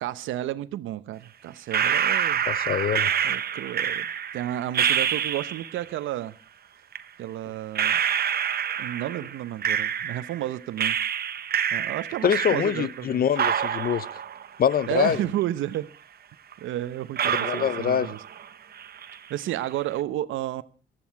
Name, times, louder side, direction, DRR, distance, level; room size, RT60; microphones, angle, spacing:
voice 1, 0.0-2.4 3.2-4.1 4.3-6.3 7.2-8.0 8.8-11.0 11.7-13.3 14.9-15.9 16.6-18.2 19.3-20.6, right 13 dB, 85° right, 0.8 m, -31 dB
sound 1, 1.7-5.8 6.9-7.0 7.8-10.4 10.8-13.1 13.4-15.4 15.7-15.8 16.5-16.6 17.2-18.5 18.8-19.3, right 8 dB, 50° right, 1.0 m, -27 dB
voice 2, 2.5-3.1 12.2-14.1 14.6-15.2 17.4-18.1, left 8 dB, 50° left, 0.7 m, -24 dB
17.5 x 13.5 x 4.6 m
cardioid pair, 90°, 20 cm